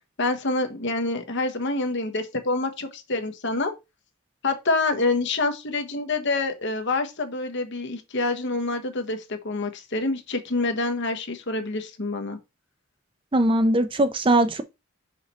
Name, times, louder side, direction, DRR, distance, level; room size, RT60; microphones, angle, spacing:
voice 1, 0.2-3.7 4.4-12.4, left 3 dB, 55° left, 1.2 m, -27 dB
voice 2, 13.3-14.6, right 1 dB, 25° right, 0.6 m, -20 dB
5.6 x 5.0 x 4.3 m
head